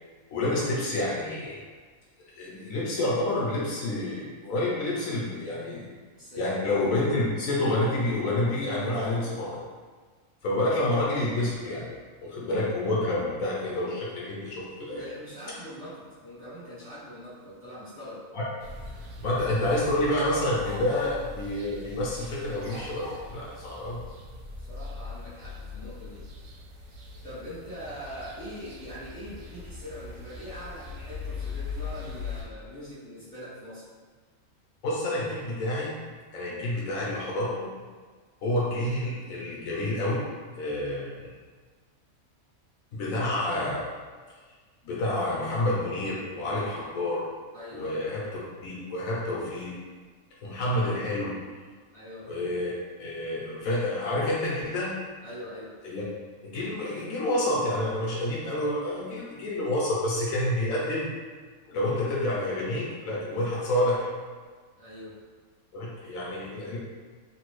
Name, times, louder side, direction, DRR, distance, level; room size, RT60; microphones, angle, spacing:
voice 1, 0.3-1.6 2.3-5.8 6.4-9.6 10.4-11.9 12.2-15.0 18.3-18.4 19.2-24.0 34.8-36.0 36.3-37.7 38.4-40.2 40.6-41.3 42.9-43.8 44.8-47.2 47.7-48.2 48.6-49.7 50.4-51.3 52.3-52.7 53.0-54.9 55.8-56.0 56.4-61.1 61.7-64.1 65.7-66.8, left 1 dB, 70° left, -5 dB, 1.2 m, -28 dB
voice 2, 6.2-6.5 14.9-18.3 24.6-26.3 27.2-33.8 47.5-48.2 51.9-52.5 55.2-55.8 64.8-65.2, equal, 25° right, -12 dB, 1.3 m, -42 dB
sound 1, 18.6-32.4, left 3 dB, 85° right, 1.1 m, -40 dB
3.3 x 2.7 x 3.1 m, 1.5 s
omnidirectional pair, 1.5 m